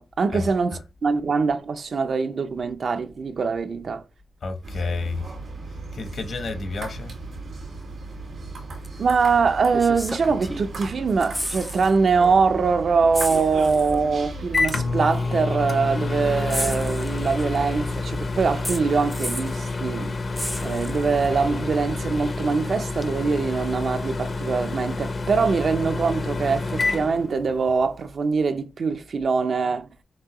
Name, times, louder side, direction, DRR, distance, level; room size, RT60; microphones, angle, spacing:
voice 1, 0.0-4.0 9.0-20.1 20.6-29.9, right 5 dB, 55° right, 0.5 m, -23 dB
voice 2, 4.4-5.3 5.9-7.2, left 3 dB, 60° left, 1.0 m, -30 dB
sound 1, 4.6-15.1, right 3 dB, 80° right, 2.0 m, -36 dB
sound 2, 8.8-9.0 9.7-10.8 11.1-11.9 12.2-12.4 13.1-14.0 15.0-15.1 16.5-17.6 18.6-19.6 20.4-21.3 23.0-23.1, equal, ahead, 0.4 m, -32 dB
Microwave oven, 13.9-27.9, left 3 dB, 45° left, 0.6 m, -28 dB
6.0 x 2.7 x 2.9 m
wide cardioid pair, 130°, 0 cm